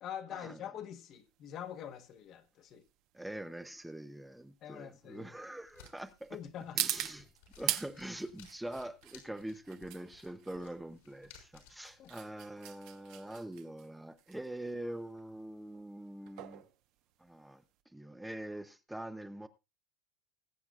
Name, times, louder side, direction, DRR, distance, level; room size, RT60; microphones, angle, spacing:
voice 1, 0.0-2.8 4.6-5.3 6.3-6.9 12.0-12.1, left 9 dB, 45° left, 1.2 m, -45 dB
sound 1, 1.1-17.8, right 13 dB, 65° right, 1.0 m, -42 dB
voice 2, 3.1-6.4 6.7-7.3 7.6-16.6 17.2-17.6 17.9-19.5, right 1 dB, 5° right, 0.7 m, -44 dB
sound 2, 5.6-12.2, left 7 dB, 85° left, 5.4 m, -60 dB
20.5 x 8.2 x 2.4 m
supercardioid pair, 135°, 0 cm